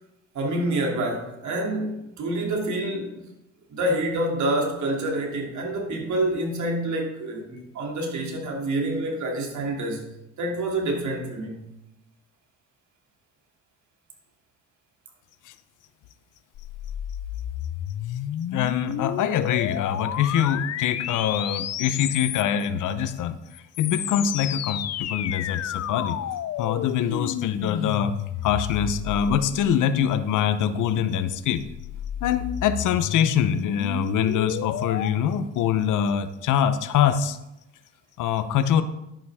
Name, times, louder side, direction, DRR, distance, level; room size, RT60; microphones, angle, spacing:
voice 1, 0.3-3.2 3.7-10.1 10.4-11.7, right 1 dB, 70° right, 1 dB, 2.8 m, -27 dB
sound 1, 16.6-22.7 23.5-30.1 31.2-35.1, left 10 dB, 60° left, 0.6 m, -31 dB
voice 2, 18.5-23.4 23.8-26.2 26.6-28.1 28.4-31.6 32.2-37.4 38.2-38.8, left 9 dB, 85° left, 11 dB, 0.9 m, -24 dB
11.5 x 9.1 x 3.6 m, 0.89 s
cardioid pair, 90°, 30 cm